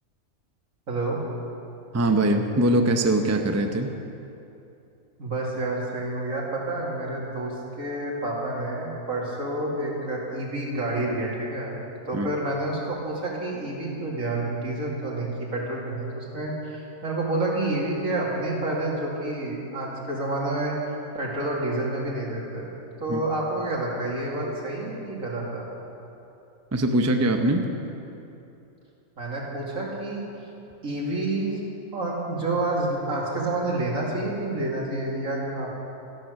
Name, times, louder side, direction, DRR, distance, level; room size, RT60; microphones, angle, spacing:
voice 1, 0.9-1.2 5.2-11.8 12.1-20.8 21.1-25.7 29.2-30.2 30.8-31.6 31.9-35.7, right 2 dB, 70° right, -3 dB, 2.8 m, -29 dB
voice 2, 1.9-4.0 12.1-12.3 23.1-23.2 26.7-27.7, right 1 dB, 15° right, 5 dB, 0.5 m, -22 dB
13.5 x 12.0 x 6.4 m, 2.8 s
omnidirectional pair, 1.4 m